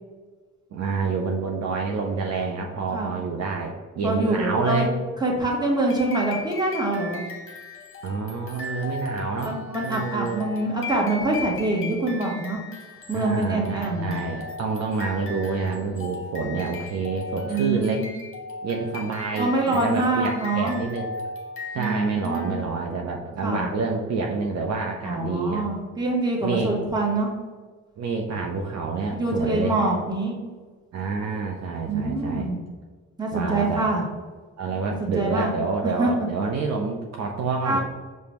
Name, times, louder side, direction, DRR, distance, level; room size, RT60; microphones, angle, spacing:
voice 1, 0.7-4.9 8.0-9.6 9.8-10.4 13.1-18.0 18.6-21.1 21.7-25.7 26.4-26.7 28.0-29.7 30.9-32.5 33.3-33.9 34.6-37.8, right 4 dB, 55° right, 1 dB, 0.5 m, -28 dB
voice 2, 4.0-4.9 5.2-7.2 9.4-12.6 13.1-14.2 17.4-18.1 19.4-20.8 21.8-22.5 23.4-23.7 25.0-27.3 29.1-30.4 31.9-32.6 33.2-34.0 35.0-35.5 35.8-36.3 37.6-37.8, right 2 dB, 15° right, -2 dB, 1.1 m, -25 dB
sound 1, 5.9-22.9, left 2 dB, 40° left, 0.9 m, -38 dB
5.0 x 2.1 x 2.9 m, 1.4 s
supercardioid pair, 70°, 32 cm